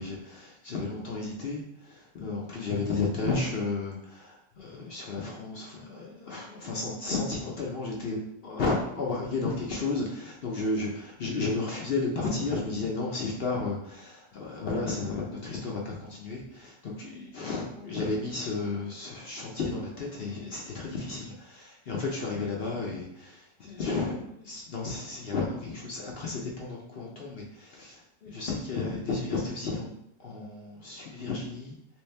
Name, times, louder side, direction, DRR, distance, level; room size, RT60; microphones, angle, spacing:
voice 1, 0.0-29.9 30.2-31.8, left 3 dB, 60° left, -2 dB, 0.7 m, -33 dB
3.1 x 3.0 x 3.2 m, 0.74 s
omnidirectional pair, 1.5 m